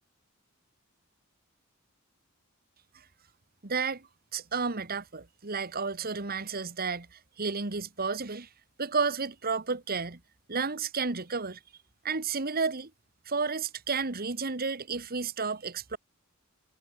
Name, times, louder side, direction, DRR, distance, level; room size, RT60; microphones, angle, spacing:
voice 1, 3.6-4.1 4.3-8.5 8.8-10.2 10.5-11.6 12.0-12.9 13.2-16.0, right 4 dB, 45° right, 1.7 m, -32 dB
head